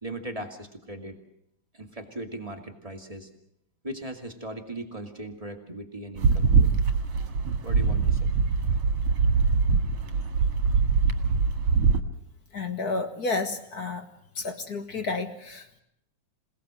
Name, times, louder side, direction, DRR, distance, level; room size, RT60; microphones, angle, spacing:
voice 1, 0.0-1.2 1.7-3.3 3.8-6.7 7.6-8.3, right 1 dB, 15° right, 2 dB, 2.1 m, -38 dB
sound 1, 6.2-12.0, right 5 dB, 55° right, 2.7 m, -23 dB
voice 2, 12.5-14.1 14.4-15.8, left 3 dB, 40° left, 7 dB, 1.7 m, -31 dB
27.5 x 18.5 x 7.7 m, 0.76 s
omnidirectional pair, 3.3 m